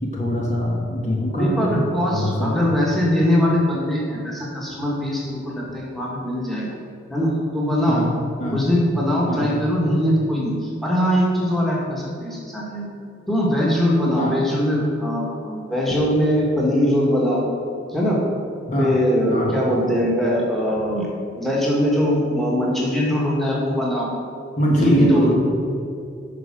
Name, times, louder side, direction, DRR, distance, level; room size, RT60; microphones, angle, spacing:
voice 1, 0.0-2.6 7.9-8.1 8.4-8.6 9.3-9.5 14.2-14.4 18.7-19.0 19.3-19.6 24.6-25.4, equal, 40° left, -2 dB, 1.2 m, -22 dB
voice 2, 1.3-6.7 7.1-8.0 8.5-10.5 10.8-12.9 13.3-17.4 17.9-18.2 18.8-21.1 21.4-24.1 24.8-25.4, equal, ahead, -4 dB, 1.8 m, -21 dB
9.4 x 5.0 x 6.1 m, 2.5 s
head